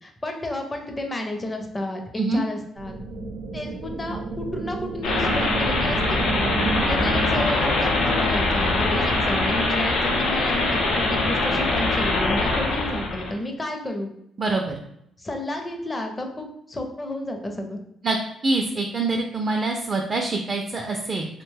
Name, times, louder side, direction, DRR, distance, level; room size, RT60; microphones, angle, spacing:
voice 1, 0.0-3.0 3.5-6.3 6.9-14.1 15.2-17.8, left 1 dB, 25° left, 3 dB, 0.5 m, -31 dB
sound 1, 2.8-7.8, right 3 dB, 90° right, 0.6 m, -31 dB
sound 2, 5.0-13.3, left 2 dB, 85° left, 0.6 m, -23 dB
voice 2, 14.4-14.7 18.0-18.2 18.4-21.3, right 3 dB, 40° right, 2 dB, 0.4 m, -25 dB
2.8 x 2.2 x 3.2 m, 0.74 s
cardioid pair, 90°, 0 cm